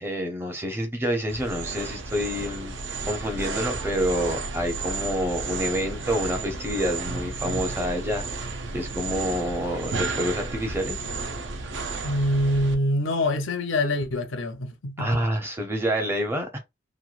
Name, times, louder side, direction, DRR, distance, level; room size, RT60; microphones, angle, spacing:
voice 1, 0.0-2.7 3.0-11.0 15.0-16.6, equal, 10° right, 0.6 m, -28 dB
sound 1, 1.3-12.7, right 3 dB, 65° right, 0.5 m, -32 dB
voice 2, 12.0-15.2, left 1 dB, 80° left, 0.6 m, -25 dB
3.0 x 2.3 x 2.4 m
head